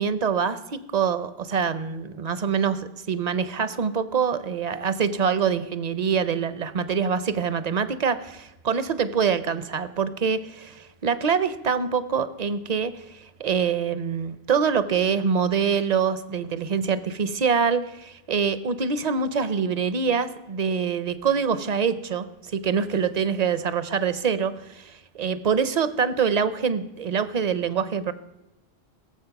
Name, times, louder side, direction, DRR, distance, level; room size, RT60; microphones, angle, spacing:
voice 1, 0.0-28.1, right 6 dB, 45° right, 14 dB, 0.6 m, -25 dB
17.0 x 7.3 x 5.8 m, 0.93 s
omnidirectional pair, 1.1 m